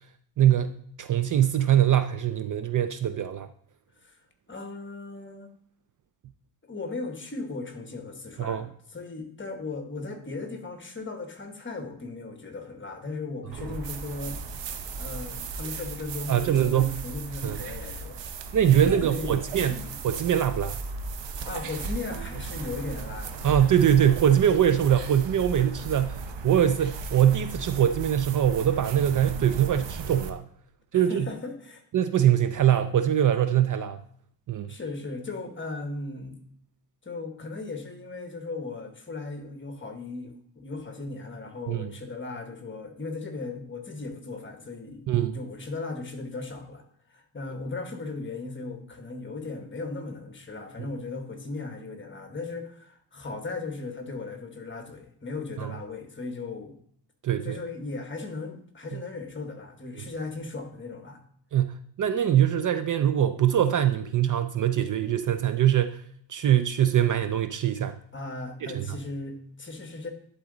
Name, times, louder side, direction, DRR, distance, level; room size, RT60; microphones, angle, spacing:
voice 1, 0.4-0.7 1.0-3.5 8.4-8.7 13.6-13.7 16.3-17.0 17.4-17.6 18.5-19.8 20.0-20.8 23.4-30.4 30.9-31.3 31.9-34.0 34.5-34.7 41.7-41.9 45.1-45.4 55.6-55.7 57.2-57.6 61.5-66.0 66.3-68.0 68.6-69.0, right 10 dB, 50° right, 10 dB, 0.4 m, -23 dB
voice 2, 4.5-5.5 6.7-14.4 15.0-18.2 18.8-19.4 19.6-19.9 21.5-23.5 25.8-25.9 30.9-31.8 32.5-32.6 34.7-36.4 37.0-46.8 47.1-56.7 57.4-61.2 68.1-70.1, left 3 dB, 25° left, 5 dB, 1.2 m, -37 dB
sound 1, 13.5-30.3, right 4 dB, 85° right, 0.8 m, -36 dB
11.0 x 4.0 x 3.9 m, 0.64 s
wide cardioid pair, 120°, 42 cm